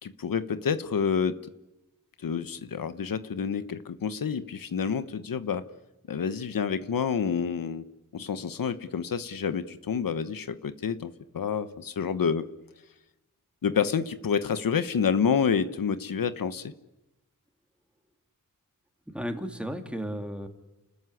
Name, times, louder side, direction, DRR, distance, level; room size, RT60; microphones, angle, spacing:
voice 1, 0.0-1.4 2.2-5.6 6.1-7.8 8.1-12.5 13.6-16.7, left 6 dB, 90° left, 12 dB, 1.2 m, -28 dB
voice 2, 19.1-20.5, equal, 5° right, 5 dB, 2.8 m, -34 dB
30.0 x 14.0 x 9.9 m, 0.98 s
wide cardioid pair, 125°, 33 cm